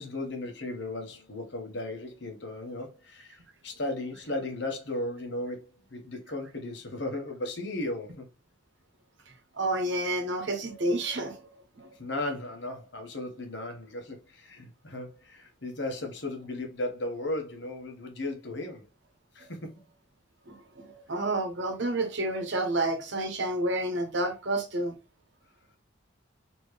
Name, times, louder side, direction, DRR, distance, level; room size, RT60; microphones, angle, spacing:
voice 1, 0.0-8.3 12.0-18.8 19.3-19.8, left 2 dB, 65° left, 1.3 m, -36 dB
voice 2, 9.5-11.4 11.7-11.9 20.5-24.9, right 2 dB, 70° right, 1.2 m, -30 dB
4.2 x 3.1 x 3.3 m
head